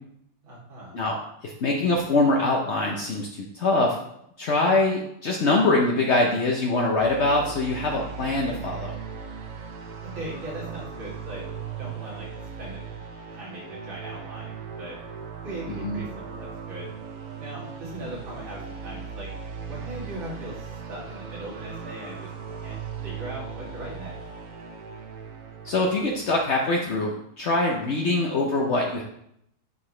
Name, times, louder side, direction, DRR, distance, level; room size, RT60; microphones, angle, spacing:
voice 1, 0.4-1.0 10.1-11.4 11.8-12.3 12.6-12.8 13.3-14.9 15.4-16.9 17.4-19.3 19.7-22.3 22.6-22.8 23.0-24.1, right 1 dB, 80° right, -6 dB, 3.4 m, -39 dB
voice 2, 1.4-4.0 4.4-8.9 15.7-16.0 25.6-29.0, left 2 dB, 70° left, 0 dB, 0.6 m, -23 dB
sound 1, 7.0-26.5, right 6 dB, 55° right, 1.0 m, -38 dB
9.9 x 4.7 x 3.2 m, 0.75 s
omnidirectional pair, 2.1 m